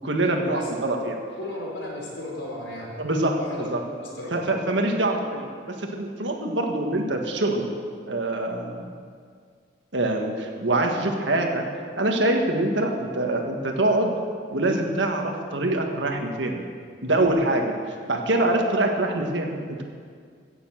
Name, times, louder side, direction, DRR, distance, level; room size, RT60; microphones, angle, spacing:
voice 1, 0.0-1.2 3.0-3.4 3.7-3.8 4.3-7.7 8.1-8.9 9.9-11.6 12.0-14.1 14.5-16.6 17.0-17.8 18.1-19.8, right 2 dB, 85° right, 2 dB, 1.7 m, -24 dB
voice 2, 1.4-2.9 3.3-4.3, left 1 dB, 80° left, -3 dB, 4.1 m, -35 dB
16.0 x 7.1 x 7.4 m, 2.1 s
head